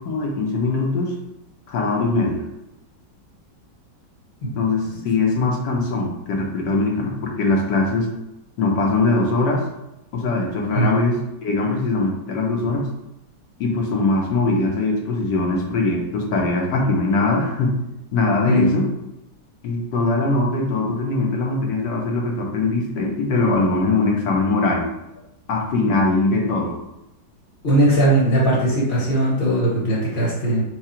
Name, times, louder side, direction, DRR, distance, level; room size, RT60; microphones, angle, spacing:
voice 1, 0.0-1.1 1.7-2.5 4.5-8.1 8.6-9.6 10.1-12.9 13.6-17.7 18.1-18.9 19.6-24.9 25.5-26.8, left 3 dB, 70° left, 0 dB, 1.5 m, -21 dB
voice 2, 27.6-30.6, right 1 dB, 35° left, -6 dB, 1.2 m, -19 dB
4.8 x 2.3 x 4.3 m, 0.89 s
omnidirectional pair, 2.0 m